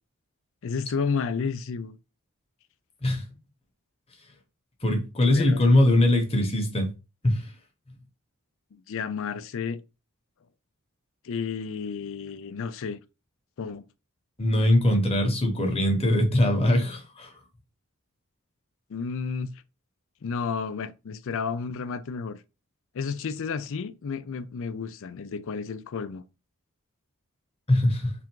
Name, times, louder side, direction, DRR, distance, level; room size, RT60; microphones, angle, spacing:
voice 1, 0.6-2.0 5.3-5.6 8.7-9.8 11.2-13.0 13.6-13.8 18.9-19.5 20.2-22.4 22.9-26.2, left 5 dB, 60° left, 0.4 m, -31 dB
voice 2, 4.8-6.9 7.2-7.4 14.4-17.3 27.7-28.1, left 1 dB, 25° left, 1.0 m, -21 dB
3.4 x 2.5 x 4.5 m
head